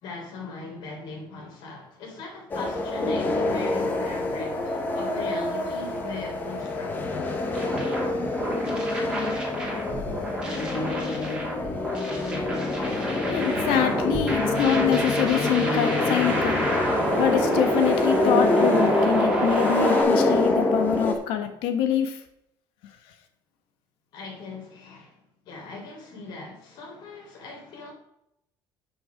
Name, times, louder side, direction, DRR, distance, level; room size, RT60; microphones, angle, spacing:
voice 1, 0.0-7.3 24.1-27.9, left 3 dB, 55° left, 3.5 m, -40 dB
sound 1, 2.5-21.2, left 2 dB, 20° left, 1.2 m, -26 dB
sound 2, 7.5-20.0, right 1 dB, 10° right, 2.4 m, -28 dB
voice 2, 13.3-16.6 17.2-22.2, left 9 dB, 80° left, 1.4 m, -25 dB
9.3 x 6.1 x 5.1 m
cardioid pair, 180°, 9 cm